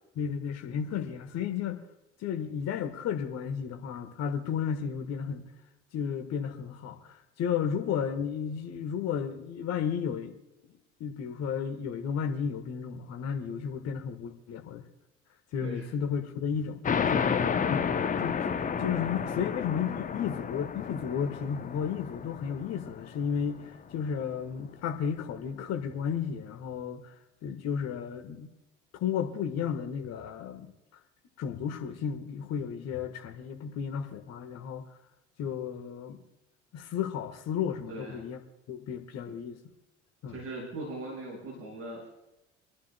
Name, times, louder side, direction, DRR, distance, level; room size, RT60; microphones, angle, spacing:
voice 1, 0.1-1.8 2.2-5.5 5.9-10.3 11.0-14.9 15.5-16.8 17.1-18.0 18.2-18.4 18.8-27.1 27.4-28.5 29.0-30.7 31.4-34.9 35.4-36.2 36.7-38.4 38.7-39.6 40.2-40.4, left 7 dB, 45° left, 7 dB, 1.5 m, -33 dB
sound 1, 16.8-24.0, left 6 dB, 20° left, 0.8 m, -31 dB
voice 2, 37.9-38.2 40.3-42.1, right 2 dB, 40° right, -3 dB, 5.4 m, -40 dB
29.5 x 11.0 x 2.3 m, 0.96 s
figure-of-eight pair, 65°, 36 cm